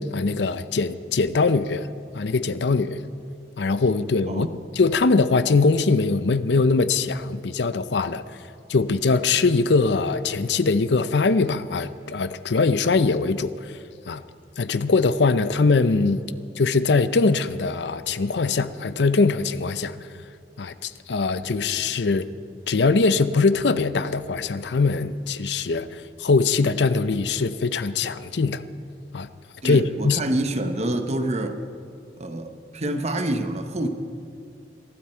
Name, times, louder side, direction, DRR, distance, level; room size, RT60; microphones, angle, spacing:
voice 1, 0.0-1.9 2.1-3.0 3.6-4.5 4.7-8.2 8.7-13.7 14.1-14.2 14.6-16.2 16.6-19.9 20.6-22.3 22.7-28.6 29.1-29.3 29.6-30.2, left 4 dB, 75° left, 0.6 m, -22 dB
voice 2, 4.3-4.6 29.6-31.6 32.2-33.9, right 1 dB, 40° right, 1.0 m, -27 dB
23.5 x 13.0 x 4.4 m
head